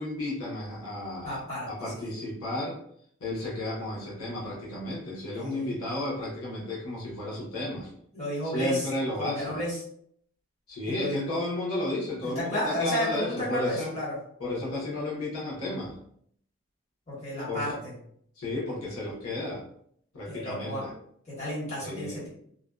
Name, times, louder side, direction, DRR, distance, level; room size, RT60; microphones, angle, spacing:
voice 1, 0.0-1.4 1.7-2.8 3.2-7.9 8.4-9.6 10.7-14.0 14.4-16.0 17.5-17.6 18.4-19.6 20.1-20.9 21.8-22.2, left 1 dB, 85° left, -5 dB, 0.8 m, -33 dB
voice 2, 1.2-2.2 5.3-5.7 8.1-8.9 9.2-9.8 10.9-11.3 12.2-14.1 17.1-17.9 20.3-20.8 21.3-22.3, left 1 dB, 30° left, -9 dB, 1.2 m, -32 dB
2.5 x 2.1 x 2.2 m, 0.66 s
head